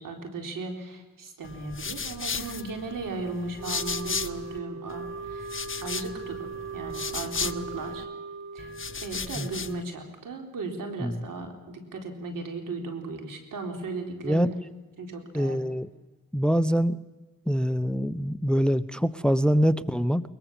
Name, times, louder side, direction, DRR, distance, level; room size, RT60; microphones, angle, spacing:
voice 1, 0.0-8.1 8.5-8.8 9.0-14.5 15.0-15.6, right 3 dB, 85° right, 4 dB, 4.1 m, -36 dB
sound 1, 1.4-4.6 4.9-8.0 8.6-9.8, left 5 dB, 40° left, 1.2 m, -35 dB
Wind instrument woodwind instrument, 3.6-9.2, right 4 dB, 50° right, 1.8 m, -39 dB
voice 2, 15.3-15.9 16.3-17.0 17.5-20.2, equal, 5° left, 16 dB, 0.8 m, -24 dB
22.0 x 21.5 x 7.3 m, 1.2 s
cardioid pair, 60°, 32 cm